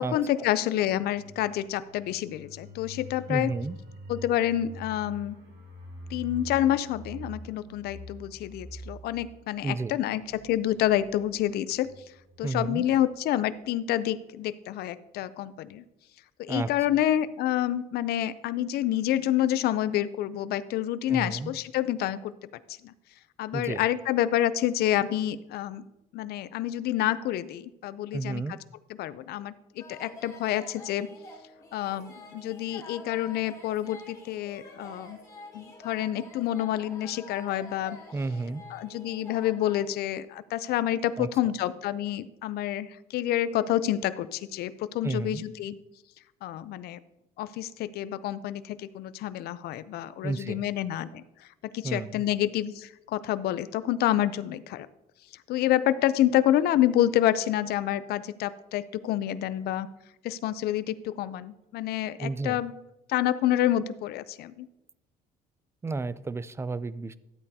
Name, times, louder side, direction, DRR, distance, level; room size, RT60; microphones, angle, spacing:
voice 1, 0.0-3.5 4.1-5.4 6.1-11.9 12.4-15.8 16.4-22.3 22.8-22.9 23.4-25.8 26.1-28.4 29.0-31.1 31.7-35.2 35.5-38.0 38.7-45.8 46.4-47.0 47.4-51.5 51.7-54.9 55.5-59.9 60.2-62.7 63.1-64.7, left 12 dB, 70° left, 15 dB, 0.5 m, -28 dB
sound 1, 0.9-13.2 13.5-13.7, right 1 dB, 90° right, 2.9 m, -46 dB
voice 2, 3.3-3.8 9.6-10.0 12.4-12.8 16.5-16.7 21.1-21.6 23.5-23.8 28.1-28.6 38.1-38.7 41.2-41.3 45.0-45.5 50.2-50.6 51.8-52.2 62.2-62.6 65.8-67.2, right 3 dB, 15° right, 17 dB, 0.3 m, -32 dB
sound 2, 29.8-39.9, left 2 dB, 20° left, 2.5 m, -47 dB
12.0 x 8.5 x 2.7 m, 0.93 s
cardioid pair, 110°, 17 cm